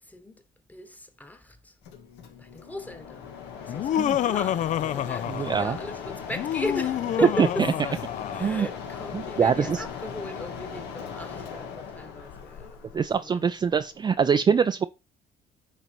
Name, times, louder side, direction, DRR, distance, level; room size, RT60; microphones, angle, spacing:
voice 1, 0.0-0.4 0.7-1.8 2.4-8.1 8.3-13.6 14.5-14.6, left 1 dB, 10° left, 1.3 m, -37 dB
Mechanisms, 1.8-14.2, left 6 dB, 85° left, 1.9 m, -39 dB
Laughter, 3.7-5.8 6.3-8.6, left 11 dB, 50° left, 0.4 m, -28 dB
voice 2, 5.3-5.8 7.4-7.5 8.4-8.7 9.1-9.8 12.9-14.9, right 6 dB, 25° right, 0.4 m, -24 dB
9.9 x 4.0 x 4.5 m
cardioid pair, 110°, 17 cm